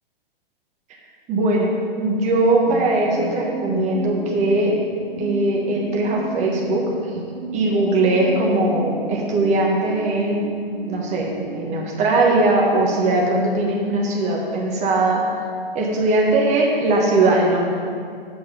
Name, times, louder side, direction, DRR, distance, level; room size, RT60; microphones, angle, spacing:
voice 1, 1.3-4.7 5.2-6.8 7.5-10.5 10.8-15.2 15.7-17.7, right 2 dB, 25° right, -1 dB, 1.4 m, -20 dB
sound 1, 2.6-11.8, right 5 dB, 70° right, 1.0 m, -32 dB
8.0 x 4.6 x 5.6 m, 2.2 s
figure-of-eight pair, 110°, 29 cm